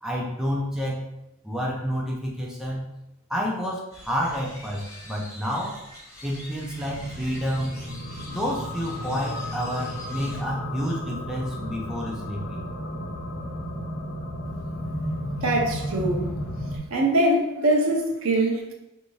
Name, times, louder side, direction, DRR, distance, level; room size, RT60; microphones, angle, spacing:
voice 1, 0.0-1.0 1.4-2.9 3.3-5.8 6.2-7.8 8.3-12.6, equal, ahead, -4 dB, 0.5 m, -29 dB
sound 1, 3.9-10.4, left 1 dB, 15° left, 1.1 m, -45 dB
sound 2, 6.7-16.8, equal, 70° left, 0.8 m, -33 dB
voice 2, 15.0-16.3 16.9-18.7, right 1 dB, 65° right, 1 dB, 0.7 m, -23 dB
4.5 x 2.7 x 3.1 m, 0.89 s
head